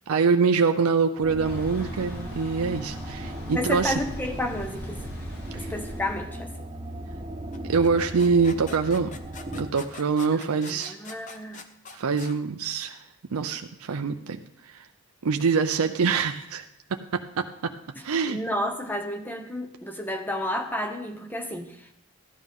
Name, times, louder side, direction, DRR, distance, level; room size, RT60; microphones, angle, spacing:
voice 1, 0.1-3.9 5.5-5.7 7.7-9.1 9.5-10.9 11.9-13.0 13.3-14.4 14.7-14.8 15.2-16.6 17.4-17.7 18.0-18.4, right 5 dB, 90° right, 6 dB, 0.6 m, -24 dB
sound 1, 1.2-9.7, right 1 dB, 20° right, 1.3 m, -38 dB
Thunder / Bicycle, 1.4-6.5, left 1 dB, 80° left, 4.8 m, -39 dB
voice 2, 3.5-5.1 5.5-6.5 10.3-11.6 17.9-21.9, left 1 dB, 10° left, 5 dB, 0.9 m, -31 dB
sound 2, 7.5-12.4, left 4 dB, 35° left, 0.8 m, -44 dB
15.5 x 11.0 x 3.6 m, 0.76 s
head